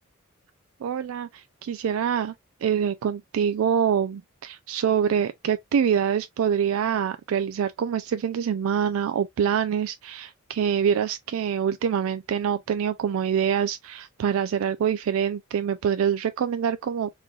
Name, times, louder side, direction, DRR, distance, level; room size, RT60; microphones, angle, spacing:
voice 1, 0.8-2.3 2.6-17.1, right 8 dB, 75° right, 0.3 m, -25 dB
3.6 x 3.1 x 2.3 m
head